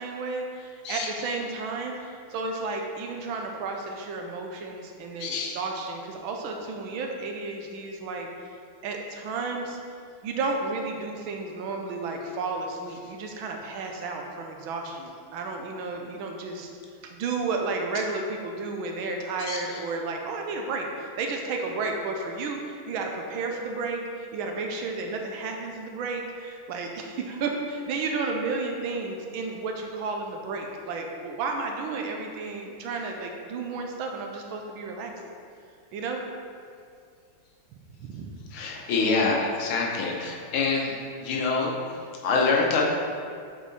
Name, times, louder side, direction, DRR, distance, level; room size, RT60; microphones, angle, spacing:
voice 1, 0.0-8.3 8.8-9.8 10.2-16.7 17.0-35.1 35.9-36.2 38.1-38.3, right 3 dB, 75° right, 2 dB, 1.4 m, -32 dB
voice 2, 5.2-5.6 19.5-19.6 38.5-40.9 41.2-41.8 42.2-42.9, left 4 dB, 75° left, -2 dB, 1.7 m, -25 dB
7.4 x 4.5 x 4.1 m, 2.3 s
omnidirectional pair, 2.4 m